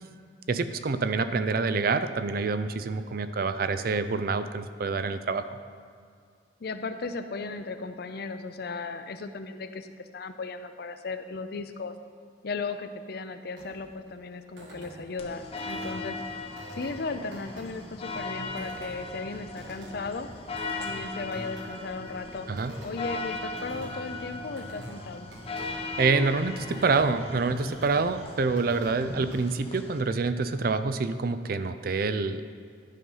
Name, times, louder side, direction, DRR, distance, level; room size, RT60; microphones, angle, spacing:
voice 1, 0.5-5.6 22.5-22.7 26.0-32.4, right 4 dB, 55° right, 11 dB, 0.4 m, -27 dB
voice 2, 6.6-9.9 10.1-11.9 12.4-16.2 16.7-20.3 20.8-22.5 22.8-25.3, left 4 dB, 60° left, 9 dB, 0.5 m, -36 dB
sound 1, 13.6-29.6, right 1 dB, 90° right, 1.5 m, -48 dB
sound 2, 15.2-30.0, left 2 dB, 35° left, 0.7 m, -38 dB
11.5 x 5.4 x 5.5 m, 2.3 s
head